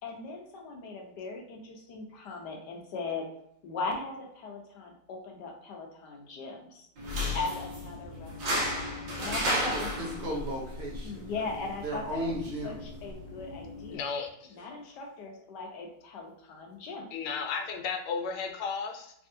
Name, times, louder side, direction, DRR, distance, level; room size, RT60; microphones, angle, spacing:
voice 1, 0.0-3.3 3.6-6.9 7.3-9.9 11.0-12.4 12.6-14.1 14.5-17.1, left 3 dB, 70° left, 0 dB, 1.1 m, -39 dB
sound 1, 7.0-14.0, equal, 70° right, 1.7 m, -34 dB
voice 2, 9.2-11.3 11.8-12.8 14.6-14.8, equal, 85° right, -3 dB, 0.5 m, -36 dB
voice 3, 13.9-14.5 17.1-19.1, left 5 dB, 90° left, 3 dB, 1.6 m, -34 dB
3.5 x 3.4 x 2.6 m, 0.72 s
omnidirectional pair, 2.3 m